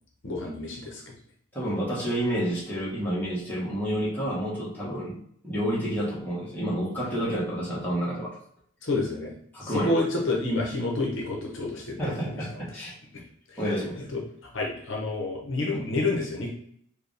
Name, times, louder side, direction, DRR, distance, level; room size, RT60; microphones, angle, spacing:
voice 1, 0.2-1.0 8.8-9.3 9.6-12.0 13.5-13.6 14.1-14.2 14.5-16.5, left 2 dB, 60° left, -1 dB, 0.9 m, -28 dB
voice 2, 1.5-5.2 5.4-8.4 9.5-10.0 12.0-12.9 13.6-14.0, equal, 10° left, -8 dB, 1.4 m, -29 dB
4.8 x 2.4 x 3.3 m, 0.66 s
head